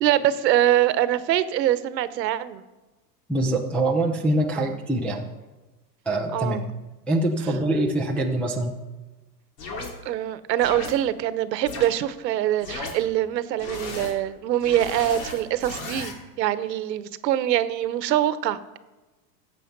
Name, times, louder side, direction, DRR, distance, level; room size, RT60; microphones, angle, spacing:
voice 1, 0.0-2.6 4.6-4.8 6.3-6.7 10.0-18.8, right 12 dB, 85° right, 14 dB, 1.1 m, -24 dB
voice 2, 3.3-5.3 6.1-6.6 7.1-8.7, right 1 dB, 5° left, -3 dB, 0.3 m, -24 dB
sound 1, 9.6-9.9 10.6-10.9 11.6-11.8 12.6-12.9 13.6-14.1 14.6-16.1, left 3 dB, 70° left, 3.3 m, -35 dB
15.0 x 8.3 x 5.3 m, 1.2 s
supercardioid pair, 140°, 49 cm